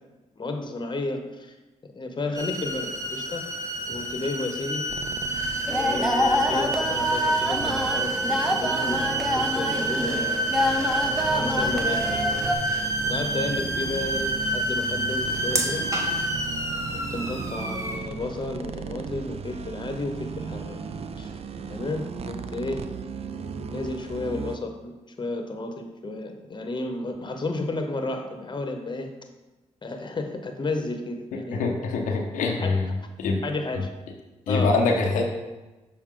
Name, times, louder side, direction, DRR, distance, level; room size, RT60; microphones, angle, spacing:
voice 1, 0.4-1.5 2.0-3.4 3.9-4.9 5.8-10.6 11.3-12.2 12.7-15.8 16.9-20.8 21.2-21.3 21.7-22.8 23.7-24.9 25.2-29.1 29.8-31.6 32.6-33.1 33.4-33.9 34.5-34.8, left 2 dB, 35° left, 5 dB, 0.9 m, -32 dB
sound 1, 2.3-18.0, right 1 dB, 25° right, 1.2 m, -28 dB
sound 2, 4.9-24.6, right 5 dB, 50° right, 0.4 m, -37 dB
sound 3, 5.7-12.6, equal, ahead, 0.7 m, -26 dB
voice 2, 31.5-32.9 33.2-33.5 34.5-35.2, left 3 dB, 90° left, 1 dB, 0.7 m, -24 dB
6.5 x 4.2 x 3.7 m, 1.1 s
supercardioid pair, 50°, 13 cm